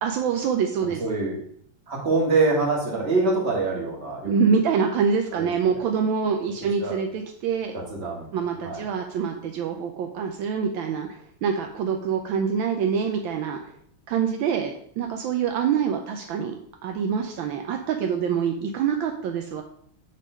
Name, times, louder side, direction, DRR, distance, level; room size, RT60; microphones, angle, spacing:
voice 1, 0.0-1.0 4.2-7.7 8.3-13.7 14.1-16.5 16.8-19.6, right 6 dB, 75° right, 4 dB, 1.3 m, -25 dB
voice 2, 1.0-1.3 1.9-4.6 5.3-5.8 6.8-7.0 7.7-8.3 8.6-8.8, right 3 dB, 35° right, -2 dB, 1.9 m, -25 dB
6.7 x 3.6 x 6.1 m, 0.65 s
omnidirectional pair, 2.3 m